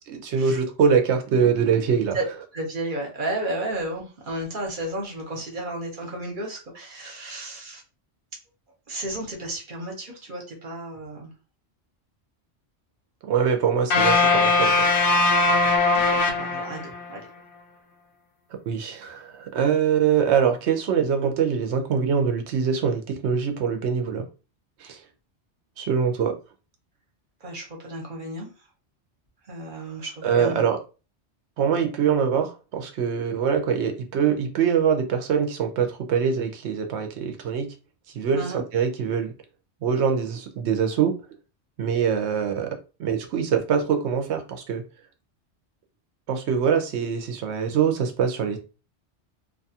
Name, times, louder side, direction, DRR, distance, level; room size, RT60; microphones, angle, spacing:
voice 1, 0.1-2.2 13.3-14.9 18.7-24.2 24.8-25.0 25.8-26.3 30.2-30.8 31.6-37.7 38.1-39.3 39.8-41.1 41.8-42.7 43.0-44.8 46.3-48.6, right 7 dB, 75° right, 0.9 m, -23 dB
voice 2, 2.5-7.8 8.9-11.3 15.9-17.3 27.4-28.5 29.5-30.7 38.3-38.6, right 1 dB, 50° right, 1.0 m, -33 dB
sound 1, 13.9-17.1, left 3 dB, 60° left, 0.7 m, -20 dB
2.6 x 2.3 x 2.7 m
omnidirectional pair, 1.2 m